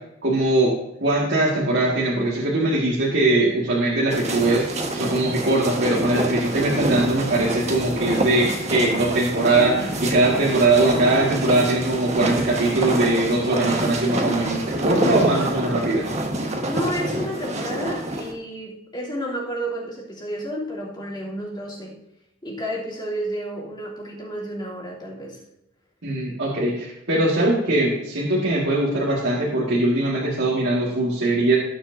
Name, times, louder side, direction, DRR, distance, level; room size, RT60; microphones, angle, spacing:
voice 1, 0.2-0.7 1.0-4.6 4.9-16.1 26.0-31.6, right 2 dB, 65° right, -6 dB, 2.1 m, -21 dB
sound 1, 4.1-18.3, right 1 dB, 35° right, 1.6 m, -26 dB
voice 2, 14.9-15.3 16.6-22.0 22.4-25.4, equal, 25° left, -6 dB, 3.3 m, -31 dB
19.0 x 6.7 x 2.8 m, 0.86 s
head